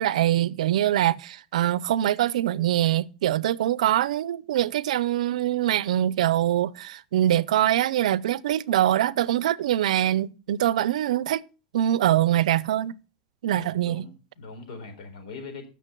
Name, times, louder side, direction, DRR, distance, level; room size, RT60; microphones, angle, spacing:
voice 1, 0.0-11.4 11.7-13.0 13.4-14.1, right 12 dB, 85° right, 0.5 m, -23 dB
voice 2, 13.5-15.7, left 4 dB, 80° left, 4.2 m, -41 dB
15.5 x 6.6 x 3.7 m
supercardioid pair, 155°, 4 cm